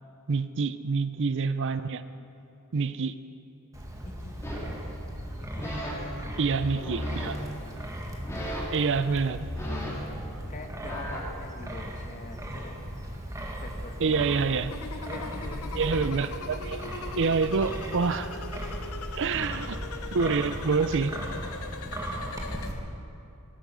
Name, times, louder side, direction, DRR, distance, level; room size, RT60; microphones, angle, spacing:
voice 1, 0.3-2.0 2.7-3.2 6.4-7.4 8.7-9.5 14.0-14.7 15.7-16.9 17.2-18.4 19.1-19.8 20.1-21.2, right 4 dB, 55° right, 13 dB, 0.6 m, -27 dB
Wind, 3.7-22.7, equal, 15° right, 1.9 m, -37 dB
voice 2, 4.0-4.4 5.4-7.3 8.4-8.8 9.0-9.2 10.5-12.8 13.6-14.6 15.0-16.1 19.3-19.5 21.8-22.7, left 2 dB, 35° left, 5 dB, 1.4 m, -45 dB
sound 1, 4.4-4.7 5.4-5.9 6.4-7.3 8.0-8.8 9.3-11.2, equal, 15° left, 3.2 m, -36 dB
sound 2, 14.7-22.7, left 4 dB, 70° left, 0.8 m, -41 dB
19.0 x 11.5 x 6.3 m, 2.7 s
head